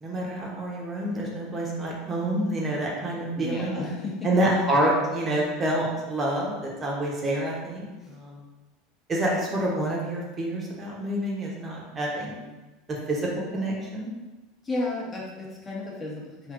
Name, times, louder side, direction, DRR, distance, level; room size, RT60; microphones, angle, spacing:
voice 1, 0.0-3.9 4.2-8.4 9.1-12.4 13.1-13.3 13.5-14.1, right 1 dB, 30° right, -3 dB, 0.8 m, -27 dB
voice 2, 3.4-4.3 8.0-8.2 14.6-16.5, left 2 dB, 25° left, -4 dB, 0.8 m, -33 dB
3.4 x 2.6 x 2.5 m, 1.2 s
hypercardioid pair, 85°, 0 cm